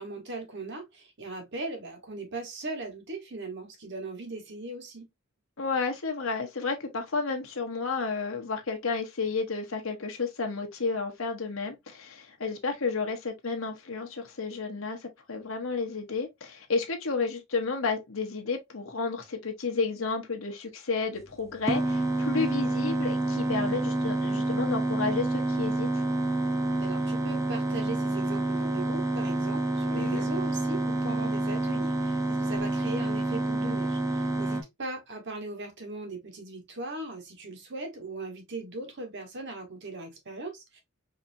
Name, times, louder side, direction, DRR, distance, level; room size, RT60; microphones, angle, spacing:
voice 1, 0.0-5.1 26.8-40.8, right 2 dB, 60° right, 1.3 m, -39 dB
voice 2, 5.6-26.0 29.9-30.3, left 4 dB, 80° left, 1.1 m, -31 dB
sound 1, 21.7-34.6, right 2 dB, 15° right, 0.7 m, -28 dB
4.9 x 2.9 x 2.6 m
head